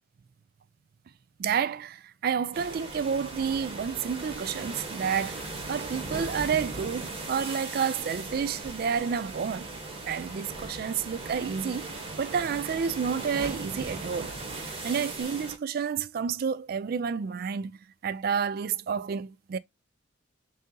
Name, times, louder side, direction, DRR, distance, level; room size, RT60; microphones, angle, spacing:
voice 1, 1.4-9.7 10.1-11.9 12.2-14.4 14.8-17.7 18.0-19.6, right 6 dB, 50° right, 0.3 m, -30 dB
sound 1, 2.5-15.6, right 3 dB, 30° right, 1.1 m, -38 dB
3.8 x 2.7 x 3.6 m
head